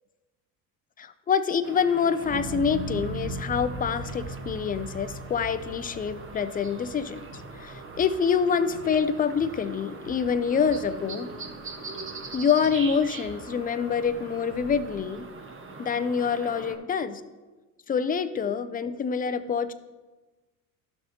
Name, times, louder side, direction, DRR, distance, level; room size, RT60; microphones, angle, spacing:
voice 1, 1.0-11.3 12.3-15.3 15.8-17.2 17.9-19.7, left 6 dB, 20° left, 12 dB, 0.4 m, -26 dB
sound 1, 1.6-16.8, right 3 dB, 25° right, 1.3 m, -42 dB
sound 2, 2.2-8.5 9.0-9.6, right 2 dB, 40° right, 2.1 m, -38 dB
sound 3, 3.2-15.4, equal, 85° right, 1.8 m, -50 dB
12.5 x 6.2 x 2.8 m, 1.2 s
hypercardioid pair, 85°, 46 cm